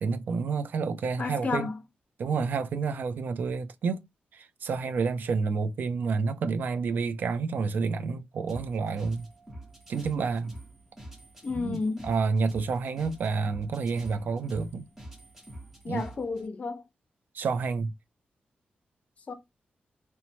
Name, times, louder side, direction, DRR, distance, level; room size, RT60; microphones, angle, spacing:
voice 1, 0.0-1.7 2.2-4.1 4.3-9.3 9.9-10.5 11.6-11.8 12.0-14.9 15.9-16.0 17.3-17.9, right 5 dB, 70° right, 0.4 m, -29 dB
voice 2, 1.2-1.8 11.4-12.1 15.8-16.8 19.3-19.4, left 4 dB, 45° left, 0.6 m, -31 dB
sound 1, 8.5-16.5, right 1 dB, 10° right, 0.9 m, -47 dB
3.0 x 2.1 x 2.7 m
wide cardioid pair, 125°, 3 cm